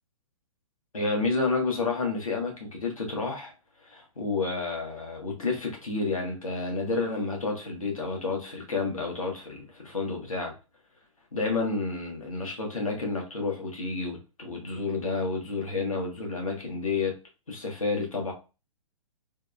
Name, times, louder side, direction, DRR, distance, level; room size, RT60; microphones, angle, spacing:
voice 1, 0.9-3.5 3.8-10.5 11.3-17.1 17.5-18.3, left 3 dB, 75° left, 1.1 m, -30 dB
3.4 x 2.1 x 2.3 m
figure-of-eight pair, 120°, 18 cm